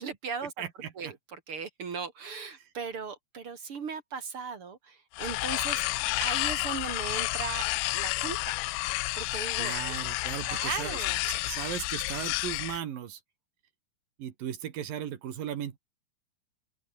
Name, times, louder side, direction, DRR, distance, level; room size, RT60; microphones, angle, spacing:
voice 1, 0.0-0.5 1.0-5.8 6.2-7.6 7.9-8.6 9.2-9.7 10.4-11.2, right 5 dB, 45° right, 2.1 m, -37 dB
voice 2, 0.6-1.1 9.6-11.0 11.2-13.2 14.2-15.8, right 10 dB, 60° right, 3.4 m, -37 dB
sound 1, 5.1-12.8, left 23 dB, 90° left, 2.8 m, -31 dB
open air
omnidirectional pair, 4.8 m